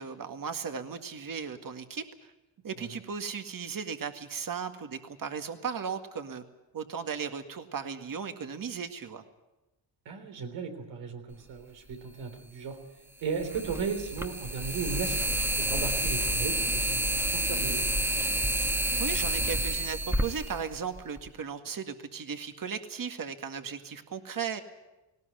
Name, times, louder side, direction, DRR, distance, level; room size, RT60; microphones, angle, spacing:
voice 1, 0.0-2.3 2.6-6.4 6.7-9.2 19.0-24.6, right 6 dB, 45° right, 7 dB, 2.0 m, -36 dB
voice 2, 10.1-12.8 13.2-17.9, right 5 dB, 90° right, 6 dB, 3.6 m, -36 dB
sound 1, 11.9-12.0 13.4-21.3, right 1 dB, 5° right, 1.4 m, -29 dB
19.0 x 18.5 x 9.1 m, 1.0 s
cardioid pair, 80°, 44 cm